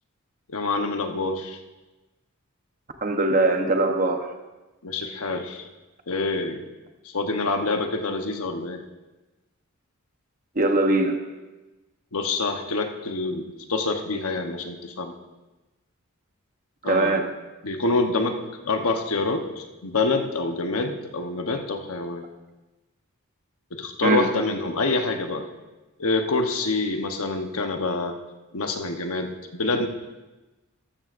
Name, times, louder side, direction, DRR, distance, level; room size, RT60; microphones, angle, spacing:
voice 1, 0.5-1.6 4.8-5.7 6.1-6.6 7.0-8.8 12.1-15.2 16.8-17.2 17.6-18.4 18.6-22.3 23.7-25.4 26.0-28.2 28.5-29.9, left 3 dB, 85° left, 5 dB, 1.0 m, -26 dB
voice 2, 3.0-4.2 10.6-11.2 16.8-17.3 24.0-24.3, right 2 dB, 40° right, 5 dB, 1.0 m, -21 dB
14.0 x 12.5 x 2.6 m, 1.1 s
head